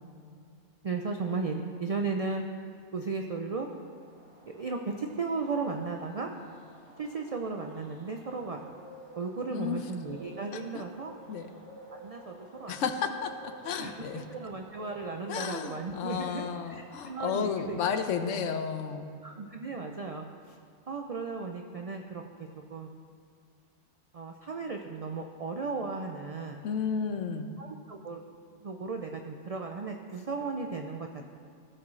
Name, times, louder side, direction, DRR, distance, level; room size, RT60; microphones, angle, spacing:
voice 1, 0.8-2.4 2.9-3.7 4.5-6.3 7.0-8.6 9.2-11.1 11.9-12.8 13.8-17.8 19.2-20.6 20.9-22.9 24.1-26.6 27.6-28.2 28.6-31.2, right 4 dB, 65° right, 3 dB, 0.3 m, -35 dB
Bird, 3.6-18.3, right 1 dB, 25° right, 1.4 m, -52 dB
voice 2, 9.5-9.8 10.5-10.8 11.3-11.5 12.7-13.3 13.6-14.2 15.3-19.1 26.6-27.5, left 6 dB, 75° left, 8 dB, 1.0 m, -32 dB
16.0 x 6.0 x 3.2 m, 2.4 s
omnidirectional pair, 1.3 m